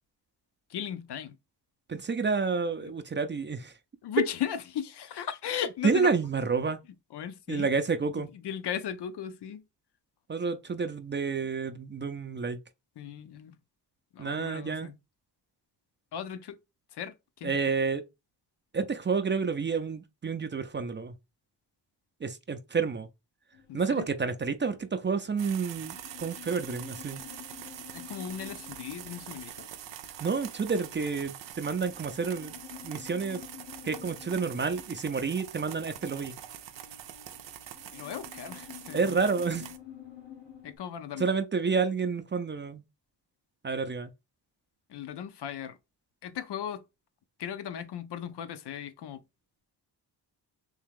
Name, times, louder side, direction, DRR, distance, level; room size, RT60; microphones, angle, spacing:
voice 1, 0.7-1.4 2.8-2.9 4.0-6.1 7.1-7.7 8.2-9.6 13.0-13.6 14.1-15.0 16.1-16.6 16.9-17.6 23.7-24.1 27.9-29.7 37.8-39.2 40.6-41.4 44.9-45.8 46.2-46.8 47.4-49.2, left 9 dB, 70° left, 0.6 m, -37 dB
voice 2, 1.9-3.7 5.8-6.8 7.5-8.3 10.3-12.6 14.2-14.9 17.4-18.0 18.7-21.1 22.2-23.1 23.7-27.2 30.2-32.6 32.8-33.4 33.8-36.3 38.9-39.7 41.2-42.8 43.6-44.1, right 5 dB, 30° right, 0.4 m, -29 dB
sound 1, 23.5-40.8, left 10 dB, 90° left, 0.9 m, -50 dB
sound 2, 25.4-39.8, right 11 dB, 85° right, 0.6 m, -44 dB
3.5 x 2.8 x 3.5 m
cardioid pair, 90°, 42 cm